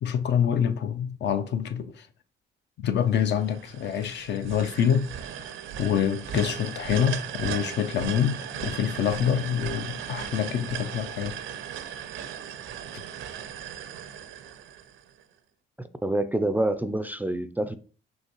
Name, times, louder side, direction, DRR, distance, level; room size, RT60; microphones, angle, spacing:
voice 1, 0.0-2.1 2.8-5.1 5.4-5.5 5.8-11.4 12.9-13.0, left 8 dB, 60° left, 0.5 m, -26 dB
sound 1, 3.1-15.2, right 9 dB, 80° right, 0.5 m, -37 dB
voice 2, 15.8-17.8, right 1 dB, 10° right, 0.3 m, -27 dB
5.6 x 3.2 x 2.9 m
cardioid pair, 90°, 20 cm